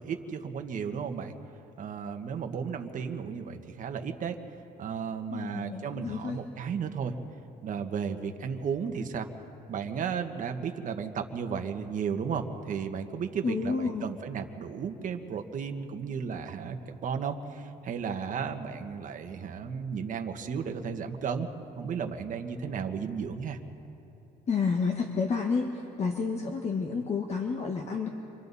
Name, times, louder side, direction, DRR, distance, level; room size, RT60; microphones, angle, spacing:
voice 1, 0.0-1.3 1.8-4.4 4.8-7.1 7.6-9.3 9.7-21.5 21.7-23.6, right 6 dB, 50° right, 6 dB, 1.5 m, -34 dB
voice 2, 5.3-6.5 13.4-14.1 24.5-28.1, left 5 dB, 40° left, 2 dB, 1.5 m, -30 dB
28.5 x 24.5 x 4.2 m, 2.9 s
cardioid pair, 110°, 17 cm